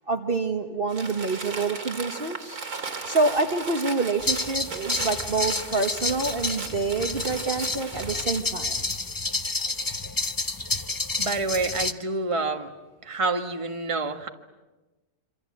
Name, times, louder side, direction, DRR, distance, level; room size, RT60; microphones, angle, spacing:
voice 1, 0.1-2.6 3.1-8.8, right 3 dB, 40° right, 5 dB, 1.5 m, -27 dB
Crumpling crinkling, 0.9-8.5, right 4 dB, 80° right, 2.8 m, -37 dB
sound 1, 4.2-11.9, left 3 dB, 20° left, 0.6 m, -30 dB
voice 2, 11.2-12.7 13.0-14.3, right 3 dB, 20° right, 6 dB, 1.5 m, -27 dB
26.5 x 26.5 x 8.5 m, 1.1 s
omnidirectional pair, 1.6 m